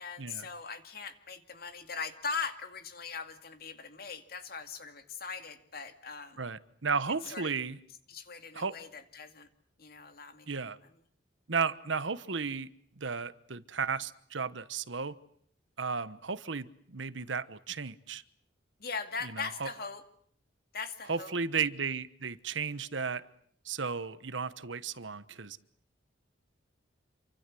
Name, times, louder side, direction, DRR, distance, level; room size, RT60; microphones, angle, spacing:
voice 1, 0.0-6.4 7.3-7.5 8.1-9.5 9.8-10.5 18.8-20.0 20.7-21.3, left 5 dB, 50° left, 8 dB, 2.4 m, -40 dB
voice 2, 6.4-7.8 8.5-8.8 10.5-10.8 11.5-12.7 13.0-15.2 15.8-18.2 19.2-19.7 21.1-23.3 23.6-25.6, right 5 dB, 80° right, 14 dB, 1.2 m, -34 dB
28.0 x 25.0 x 7.8 m, 0.63 s
head